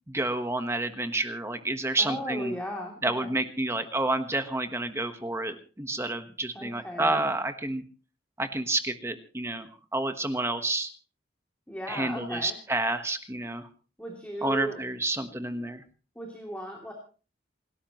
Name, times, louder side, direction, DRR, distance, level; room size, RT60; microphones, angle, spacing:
voice 1, 0.1-2.5 3.0-7.8 8.4-10.9 11.9-13.7 14.4-15.8, right 2 dB, 15° right, 8 dB, 1.3 m, -29 dB
voice 2, 2.0-3.3 6.5-7.2 11.7-12.6 14.0-14.8 16.1-16.9, equal, 5° left, 0 dB, 2.9 m, -36 dB
28.5 x 12.5 x 3.1 m, 0.37 s
head